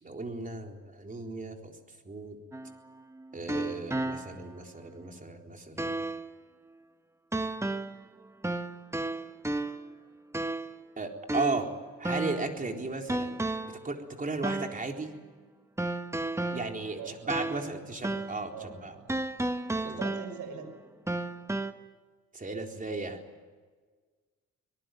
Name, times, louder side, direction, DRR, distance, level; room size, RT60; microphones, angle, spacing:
voice 1, 0.0-1.7 2.0-2.4 3.3-6.0 11.0-11.7 12.0-15.1 16.5-18.9 19.9-20.0 22.3-23.2, right 3 dB, 25° right, 3 dB, 4.0 m, -35 dB
sound 1, 2.5-4.6 5.0-5.1 5.8-6.3 7.3-8.1 8.4-10.0 10.3-10.8 11.3-12.6 13.1-13.9 14.4-14.9 15.8-17.8 18.0-18.4 19.1-20.6 21.1-21.7, right 2 dB, 10° right, 1.5 m, -33 dB
voice 2, 17.0-17.8 18.5-19.1 19.8-20.7, right 6 dB, 80° right, 8 dB, 6.3 m, -43 dB
25.0 x 19.0 x 9.3 m, 1.5 s
cardioid pair, 90°, 30 cm